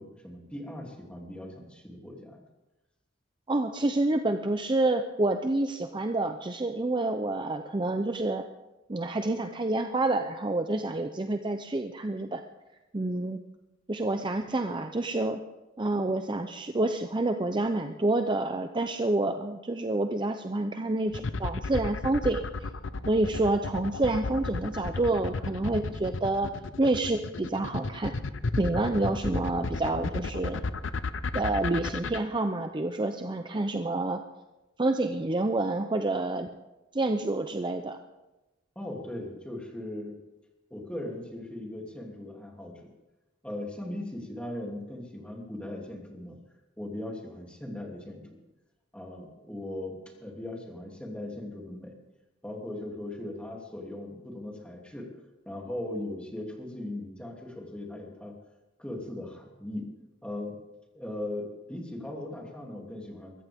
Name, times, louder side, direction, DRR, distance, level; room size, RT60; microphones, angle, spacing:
voice 1, 0.0-2.5 38.7-40.2 40.7-42.9 43.4-46.4 46.8-48.4 48.9-51.9 52.4-55.1 55.4-58.3 58.8-59.9 60.2-60.6 60.9-63.3, left 1 dB, 5° left, -1 dB, 2.9 m, -39 dB
voice 2, 3.5-8.4 8.9-12.4 12.9-13.4 13.9-15.4 15.8-22.4 23.1-26.5 26.8-28.1 28.6-30.6 31.3-34.2 34.8-36.5 36.9-38.0, right 2 dB, 25° right, 6 dB, 0.6 m, -28 dB
sound 1, 21.1-32.2, left 3 dB, 75° left, 0.7 m, -32 dB
23.5 x 14.0 x 3.6 m, 1.0 s
head